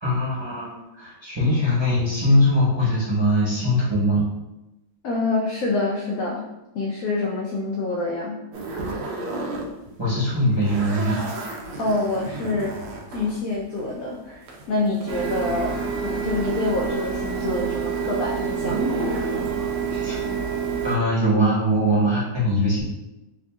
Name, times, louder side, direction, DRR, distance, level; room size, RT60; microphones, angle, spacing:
voice 1, 0.0-4.2 10.0-11.2 19.9-20.2 20.8-22.8, equal, 20° right, -9 dB, 0.9 m, -21 dB
voice 2, 5.0-6.5 6.7-8.4 11.8-12.8 13.1-19.0, left 2 dB, 80° left, -1 dB, 0.7 m, -26 dB
sound 1, 8.5-9.7 10.0-16.1 16.4-20.0, right 1 dB, 85° right, 1.4 m, -33 dB
Printer, 15.1-21.0, right 6 dB, 70° right, 0.9 m, -27 dB
3.5 x 2.5 x 3.4 m, 0.96 s
omnidirectional pair, 2.0 m